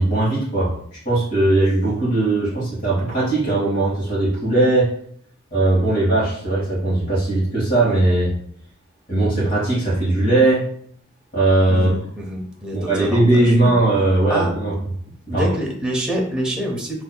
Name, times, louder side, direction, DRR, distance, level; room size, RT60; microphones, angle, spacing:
voice 1, 0.0-4.9 5.5-8.3 9.1-10.7 11.3-11.9 12.7-14.7 15.3-15.5, right 2 dB, 40° left, -9 dB, 1.4 m, -19 dB
voice 2, 11.7-13.7 14.3-14.5 15.3-17.0, right 1 dB, 5° right, -2 dB, 0.6 m, -26 dB
6.2 x 2.7 x 2.2 m, 0.63 s
head